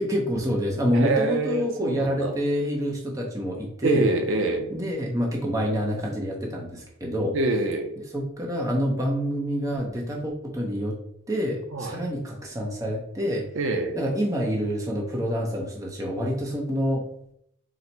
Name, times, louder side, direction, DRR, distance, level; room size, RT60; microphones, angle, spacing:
voice 1, 0.0-4.1 4.7-7.4 8.1-11.0 11.3-13.5 13.9-17.1, equal, 15° right, -1 dB, 0.6 m, -27 dB
voice 2, 0.9-2.3 3.8-4.7 7.3-7.9 11.7-12.0 13.6-13.9, right 2 dB, 75° right, 5 dB, 0.5 m, -25 dB
4.1 x 2.1 x 4.3 m, 0.73 s
head